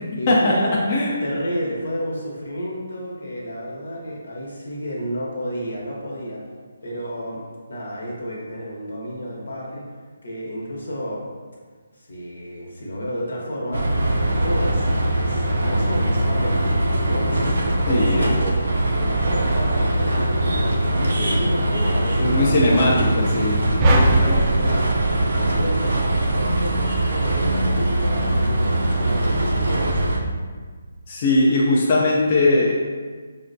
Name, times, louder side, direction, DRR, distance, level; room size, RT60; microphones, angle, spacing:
voice 1, 0.1-0.7 1.2-6.4 6.8-7.4 7.7-9.8 10.2-11.2 12.0-13.9 14.2-14.9 15.2-16.7 17.0-22.8 23.8-30.2, equal, 85° left, -3 dB, 1.1 m, -31 dB
sound 1, 13.7-30.2, right 1 dB, 80° right, 0.5 m, -21 dB
voice 2, 17.9-18.3 22.2-23.6 31.1-32.7, left 2 dB, 35° left, -5 dB, 0.5 m, -19 dB
sound 2, 23.8-26.2, right 1 dB, 20° right, 0.4 m, -20 dB
5.5 x 2.2 x 2.6 m, 1.5 s
hypercardioid pair, 160°, 0 cm